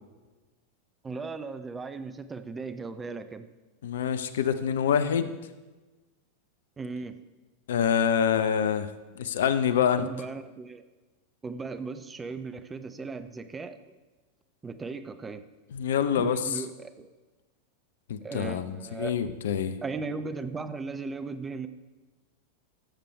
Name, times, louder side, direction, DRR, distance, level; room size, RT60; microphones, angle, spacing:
voice 1, 1.0-3.5 6.8-7.2 10.0-10.8 11.4-13.8 14.6-15.4 16.2-17.1 18.2-19.1 19.8-21.7, right 4 dB, 15° right, 11 dB, 0.6 m, -37 dB
voice 2, 3.8-5.3 7.7-8.9 9.1-10.1 15.7-16.4 18.1-19.8, left 8 dB, 60° left, 11 dB, 0.6 m, -26 dB
14.0 x 6.8 x 4.6 m, 1.2 s
figure-of-eight pair, 90°, 0 cm